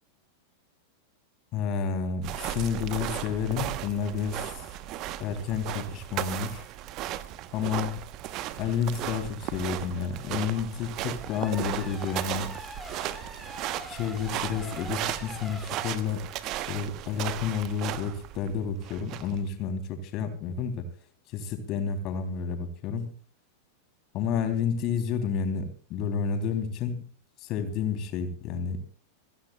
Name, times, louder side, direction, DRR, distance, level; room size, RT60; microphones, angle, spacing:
voice 1, 1.5-4.4 5.2-6.6 7.5-7.9 8.6-12.5 13.9-16.2 16.7-20.9 21.3-23.1 24.1-27.1 27.4-28.8, left 6 dB, 40° left, 9 dB, 3.5 m, -30 dB
sound 1, 2.2-19.5, right 13 dB, 40° right, 1.1 m, -36 dB
sound 2, 11.1-16.0, equal, 5° right, 3.8 m, -44 dB
26.0 x 16.0 x 2.4 m, 0.40 s
figure-of-eight pair, 90°, 0 cm